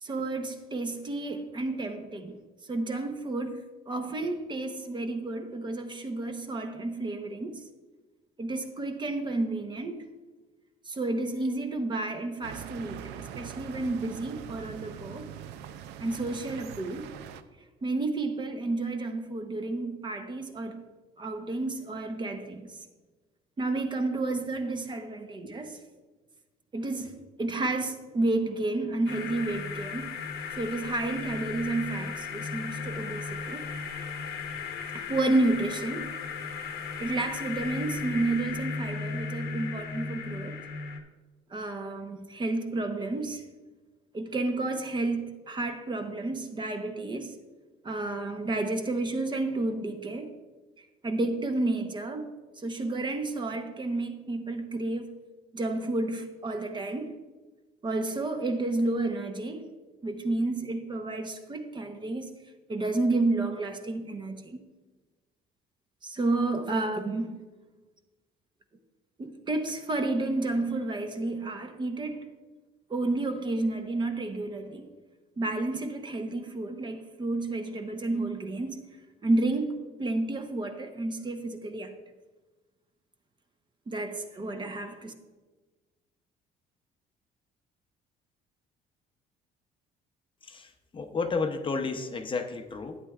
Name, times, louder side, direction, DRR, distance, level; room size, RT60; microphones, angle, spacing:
voice 1, 0.0-2.4 2.7-7.6 8.4-10.0 10.9-15.3 16.0-17.1 17.8-20.8 21.2-22.8 23.6-25.8 26.7-30.2 30.6-33.6 34.9-36.1 37.0-40.6 41.5-43.4 44.1-47.4 47.8-50.3 51.0-55.1 55.5-57.1 57.8-59.7 60.0-62.3 62.7-64.6 66.0-67.3 69.2-72.3 72.9-74.9 75.4-78.8 79.2-81.9 83.9-85.1, right 2 dB, 25° right, 0.8 m, -31 dB
sound 1, 12.4-17.4, right 9 dB, 90° right, 0.5 m, -42 dB
sound 2, 29.1-41.0, left 5 dB, 70° left, 0.9 m, -36 dB
voice 2, 90.4-93.0, left 4 dB, 30° left, 0.7 m, -32 dB
11.5 x 8.9 x 2.4 m
cardioid pair, 110°, 17 cm